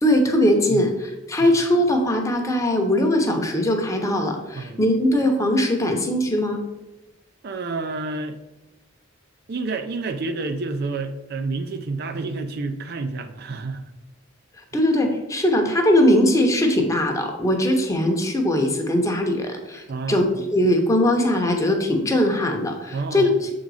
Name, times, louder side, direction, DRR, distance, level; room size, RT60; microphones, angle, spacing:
voice 1, 0.0-6.6 14.7-23.5, left 1 dB, 15° left, 3 dB, 0.8 m, -20 dB
voice 2, 7.4-8.4 9.5-13.9 19.9-20.2 22.9-23.3, right 3 dB, 50° right, 8 dB, 0.4 m, -29 dB
7.2 x 3.9 x 4.8 m, 1.0 s
head